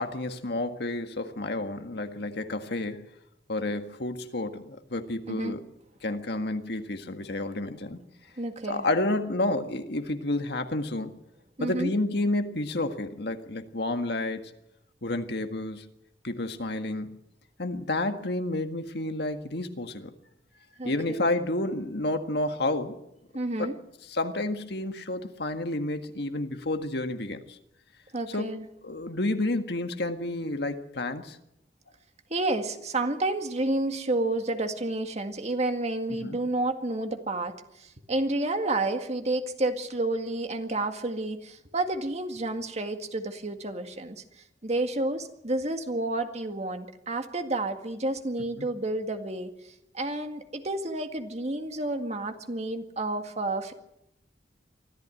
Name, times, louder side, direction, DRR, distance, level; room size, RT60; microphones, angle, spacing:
voice 1, 0.0-3.1 3.5-5.6 6.0-8.0 8.7-11.1 11.6-14.5 15.0-15.9 16.2-17.2 17.6-20.1 20.8-23.0 23.6-23.7 24.1-27.6 28.3-28.6 28.8-31.4 36.2-36.4 48.6-48.7, left 2 dB, 65° left, 7 dB, 1.8 m, -30 dB
voice 2, 8.4-8.9 11.6-11.9 20.8-21.2 23.3-23.8 28.1-28.7 32.3-44.2 44.6-53.7, right 2 dB, 40° right, 6 dB, 2.0 m, -30 dB
24.0 x 14.5 x 9.0 m, 0.83 s
head